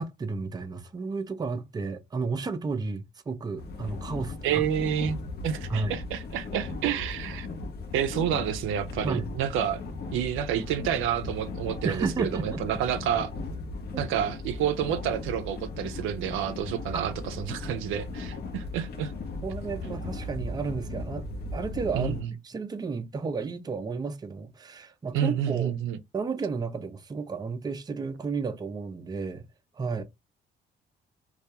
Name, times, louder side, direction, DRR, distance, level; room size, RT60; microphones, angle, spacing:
voice 1, 0.0-4.6 5.0-5.1 5.7-5.9 9.0-9.3 11.8-12.8 13.9-14.0 16.9-17.2 19.4-21.3 21.5-22.1 22.4-25.7 26.1-29.5 29.8-30.0, right 4 dB, 20° right, 0.4 m, -32 dB
sound 1, 3.6-22.2, left 3 dB, 55° left, 0.7 m, -37 dB
voice 2, 4.4-5.2 5.4-7.5 7.9-9.8 10.1-13.3 14.0-19.1 21.9-22.3 25.1-26.0, right 9 dB, 90° right, 0.4 m, -29 dB
2.3 x 2.2 x 2.8 m
cardioid pair, 90°, 20 cm